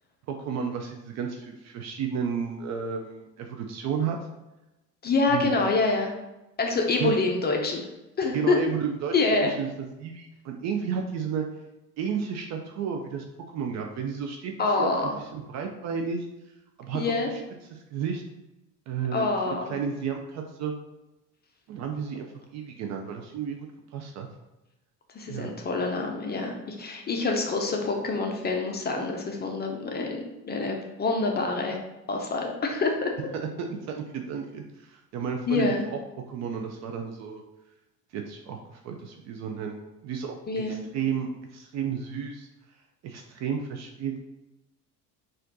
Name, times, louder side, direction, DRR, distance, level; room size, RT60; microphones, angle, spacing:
voice 1, 0.3-4.2 5.3-5.4 7.0-7.1 8.3-9.7 10.0-11.4 12.0-13.2 13.5-16.3 16.8-17.0 17.3-17.4 17.7-18.2 18.9-20.7 21.7-22.3 22.5-24.3 25.3-25.5 33.9-36.0 36.3-37.4 38.1-42.5 43.0-44.2, right 7 dB, 35° right, 3 dB, 0.5 m, -32 dB
voice 2, 5.0-6.1 6.6-7.8 8.2-8.6 9.1-9.5 14.6-15.1 16.9-17.3 19.1-19.7 25.1-30.2 30.4-31.8 32.1-33.1 35.5-35.8 40.5-40.8, left 3 dB, 20° left, 2 dB, 0.6 m, -26 dB
4.2 x 2.5 x 4.0 m, 0.96 s
figure-of-eight pair, 65°, 48 cm